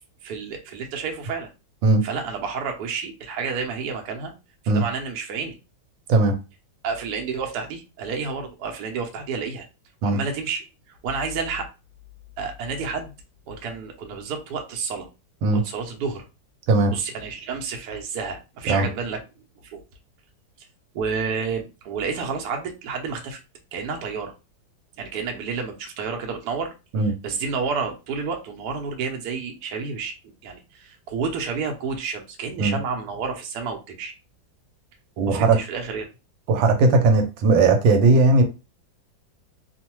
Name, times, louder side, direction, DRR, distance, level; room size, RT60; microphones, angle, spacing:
voice 1, 0.2-1.5 2.0-4.3 4.6-5.6 6.8-9.7 10.0-11.7 12.4-13.1 13.5-15.1 15.5-16.2 16.9-19.2 19.7-19.8 20.9-23.4 23.7-24.3 25.0-26.7 27.2-30.1 30.4-34.1 35.2-36.1, right 5 dB, 70° right, 2 dB, 1.1 m, -30 dB
voice 2, 35.2-35.6 36.5-38.4, right 3 dB, 85° right, 5 dB, 1.3 m, -18 dB
3.0 x 2.1 x 2.9 m, 0.29 s
omnidirectional pair, 2.0 m